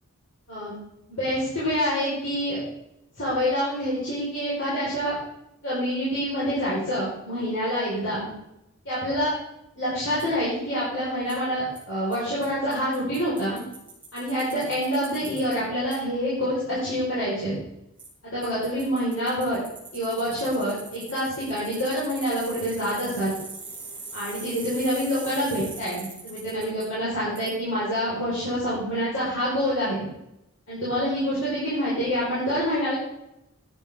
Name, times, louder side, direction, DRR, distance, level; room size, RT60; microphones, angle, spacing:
voice 1, 1.1-2.6 3.2-5.1 5.6-8.3 8.8-9.3 9.8-13.6 14.1-17.5 18.2-19.6 19.9-23.3 24.1-30.1 30.7-32.9, equal, 60° left, -10 dB, 5.0 m, -27 dB
Bicycle, 10.2-10.3 11.3-11.4 11.8-11.9 12.1-12.2 12.4-12.5 12.7-15.6 15.9-16.0 18.0-18.1 18.4-26.8 27.4-27.5, right 3 dB, 5° right, 2.5 m, -41 dB
11.5 x 9.7 x 3.8 m, 0.84 s
head